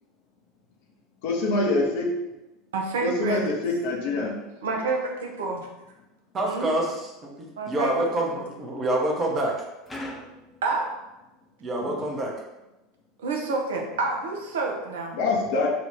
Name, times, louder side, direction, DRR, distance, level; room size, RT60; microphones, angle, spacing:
voice 1, 1.2-2.1 3.0-4.3 11.8-11.9 15.1-15.7, left 2 dB, 55° left, -1 dB, 0.8 m, -25 dB
voice 2, 2.7-3.4 4.6-5.6 6.4-6.7 7.6-8.0 8.3-8.4 10.6-10.9 13.2-15.2, right 3 dB, 65° right, 1 dB, 0.7 m, -28 dB
voice 3, 6.3-9.6 11.6-12.3, right 1 dB, 30° right, 0 dB, 0.9 m, -27 dB
sound 1, 9.9-11.5, left 1 dB, 15° left, 0.8 m, -40 dB
3.8 x 2.5 x 3.5 m, 0.99 s
figure-of-eight pair, 75°, 0 cm